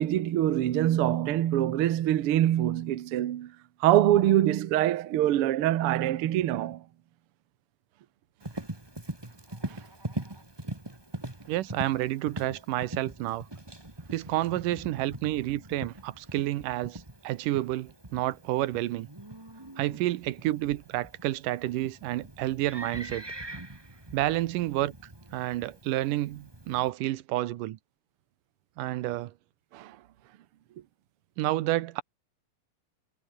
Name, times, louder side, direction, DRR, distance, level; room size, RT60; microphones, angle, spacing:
voice 1, 0.0-3.5 3.8-6.8 29.7-30.0, right 12 dB, 90° right, 1.2 m, -24 dB
Livestock farm animals working animals, 8.4-26.9, right 1 dB, 10° right, 1.2 m, -42 dB
voice 2, 11.5-13.5 14.1-19.1 19.8-23.2 24.1-24.9 25.3-27.8 28.8-29.3 31.4-32.0, right 15 dB, 75° right, 2.3 m, -30 dB
omnidirectional pair, 4.2 m